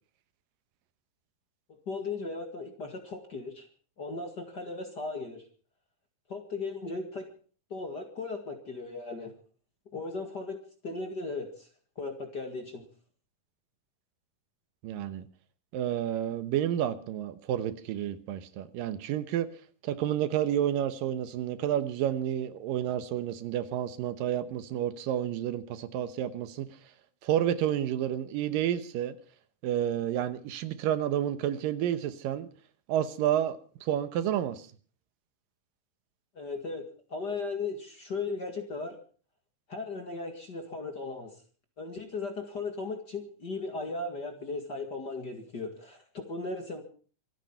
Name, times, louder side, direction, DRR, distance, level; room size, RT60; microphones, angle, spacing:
voice 1, 1.9-3.7 4.0-5.4 6.3-7.3 7.7-9.3 9.9-11.7 12.0-12.9 36.4-36.8 37.1-39.0 39.7-41.4 41.8-46.8, left 3 dB, 35° left, 5 dB, 2.0 m, -37 dB
voice 2, 14.8-15.2 15.7-19.5 19.8-26.7 27.2-29.2 29.6-32.5 32.9-34.7, right 11 dB, 80° right, 12 dB, 2.7 m, -30 dB
25.5 x 9.4 x 5.6 m, 0.42 s
omnidirectional pair, 4.0 m